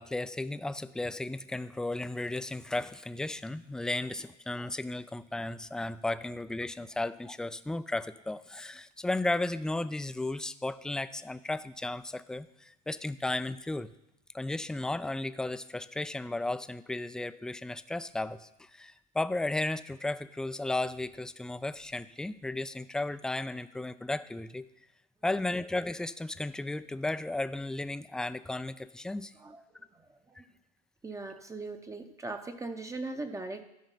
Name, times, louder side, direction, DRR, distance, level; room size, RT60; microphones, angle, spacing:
voice 1, 0.0-13.9 14.3-24.7 25.2-29.3, left 2 dB, 5° left, 14 dB, 0.3 m, -34 dB
voice 2, 29.4-30.5 31.0-33.6, right 3 dB, 15° right, 6 dB, 0.7 m, -40 dB
13.0 x 5.1 x 5.7 m, 0.89 s
supercardioid pair, 100°, 21 cm